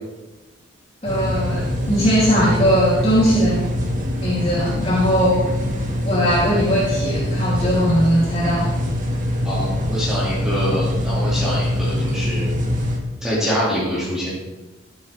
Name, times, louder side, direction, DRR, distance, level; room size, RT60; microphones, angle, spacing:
voice 1, 1.0-3.6 4.2-5.4 6.0-8.7, equal, 30° left, -7 dB, 3.0 m, -19 dB
sound 1, 1.0-13.0, left 1 dB, 40° right, 1.8 m, -23 dB
voice 2, 9.4-12.5 13.2-14.3, equal, 5° right, -8 dB, 2.3 m, -25 dB
14.5 x 8.3 x 3.5 m, 1.1 s
head